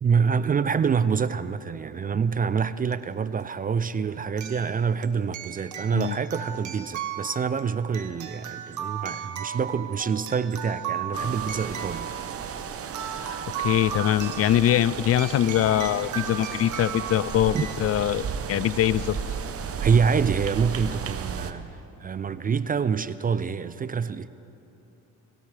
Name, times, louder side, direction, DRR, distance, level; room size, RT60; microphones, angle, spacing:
voice 1, 0.0-12.1 17.5-17.7 19.8-24.3, right 6 dB, 25° right, 0.4 m, -26 dB
sound 1, 2.9-3.0 4.4-17.8, right 8 dB, 55° right, 1.2 m, -36 dB
sound 2, 11.1-21.5, right 6 dB, 40° right, 0.9 m, -34 dB
voice 2, 13.1-19.2, left 12 dB, 45° left, 0.4 m, -23 dB
22.5 x 17.0 x 3.3 m
supercardioid pair, 80°, 35 cm